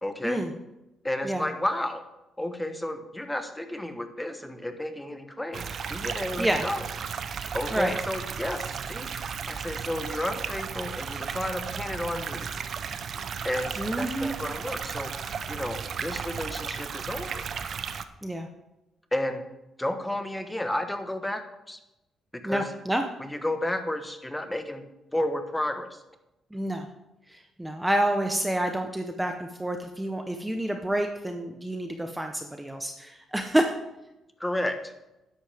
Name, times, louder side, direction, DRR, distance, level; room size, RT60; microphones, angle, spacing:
voice 1, 0.0-0.4 1.0-2.0 2.4-6.9 7.5-12.5 13.4-17.5 19.1-19.4 19.8-21.8 22.3-22.6 23.2-24.8 25.1-26.0 34.4-34.9, left 1 dB, 10° left, 7 dB, 1.3 m, -32 dB
sound 1, 5.5-18.0, right 6 dB, 55° right, 0.8 m, -34 dB
voice 2, 13.8-14.4 18.2-18.5 22.4-23.0 26.5-26.9 27.3-33.7, right 1 dB, 10° right, 5 dB, 1.0 m, -28 dB
12.5 x 10.5 x 3.6 m, 0.95 s
cardioid pair, 90°, 0 cm